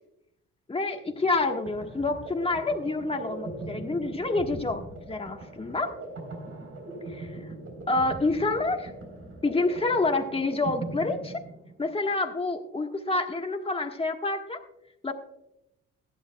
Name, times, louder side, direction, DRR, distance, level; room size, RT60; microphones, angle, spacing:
voice 1, 0.7-5.9 7.1-7.3 7.9-8.9 9.4-11.4 11.8-14.6 15.0-15.1, left 3 dB, 20° left, 4 dB, 1.4 m, -28 dB
sound 1, 1.1-11.9, right 2 dB, 50° right, 3.8 m, -40 dB
16.0 x 11.5 x 2.3 m, 0.85 s
cardioid pair, 90°, 30 cm